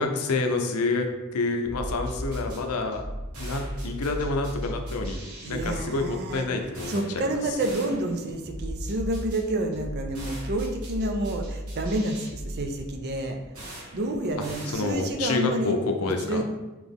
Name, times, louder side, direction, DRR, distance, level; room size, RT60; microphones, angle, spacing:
voice 1, 0.0-3.0 3.4-5.2 5.5-7.4 14.7-16.4, left 3 dB, 85° left, 5 dB, 0.6 m, -28 dB
sound 1, 1.6-15.3, equal, 85° right, 1.2 m, -37 dB
voice 2, 5.4-6.5 6.9-13.4 13.7-16.4, right 1 dB, 45° right, 5 dB, 0.5 m, -29 dB
4.0 x 2.9 x 3.5 m, 1.1 s
head